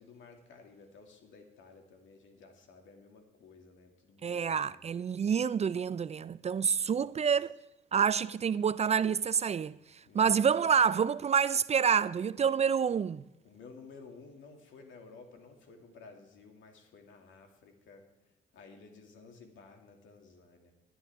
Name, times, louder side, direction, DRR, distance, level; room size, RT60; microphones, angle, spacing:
voice 1, 0.0-4.9 6.8-7.3 10.1-10.6 13.4-18.1 18.5-20.7, left 4 dB, 75° left, 2.4 m, -54 dB
voice 2, 4.2-7.5 7.9-9.8 10.1-13.2, right 7 dB, 35° right, 0.3 m, -28 dB
19.0 x 11.0 x 3.6 m
cardioid pair, 90°, 20 cm